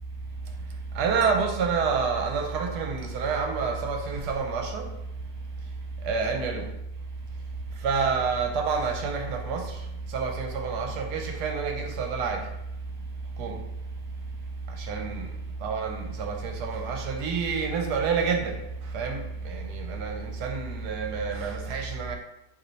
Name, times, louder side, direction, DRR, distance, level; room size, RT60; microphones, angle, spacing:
voice 1, 0.9-4.9 6.0-6.7 7.8-9.8 10.1-12.5 13.4-13.6 14.8-15.3 15.6-18.6 18.9-22.2, right 5 dB, 75° right, 1.2 m, -28 dB
5.1 x 2.9 x 3.1 m
omnidirectional pair, 1.8 m